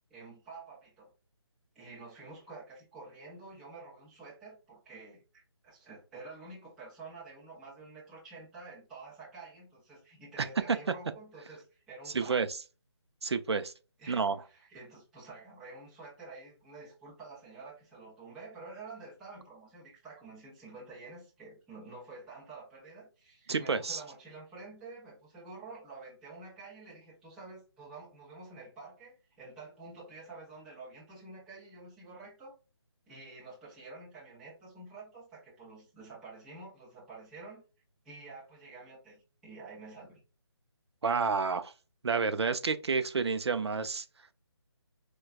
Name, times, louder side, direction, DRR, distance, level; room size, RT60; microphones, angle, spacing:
voice 1, 0.1-1.1 1.7-12.5 14.0-32.6 33.1-37.6 38.0-40.2, right 3 dB, ahead, 0.6 m, -49 dB
voice 2, 12.1-12.5 13.2-13.7 14.1-14.4 23.5-24.0 41.0-41.7 42.0-44.0, right 5 dB, 65° right, 0.5 m, -29 dB
4.5 x 2.2 x 2.4 m
hypercardioid pair, 170°, 15 cm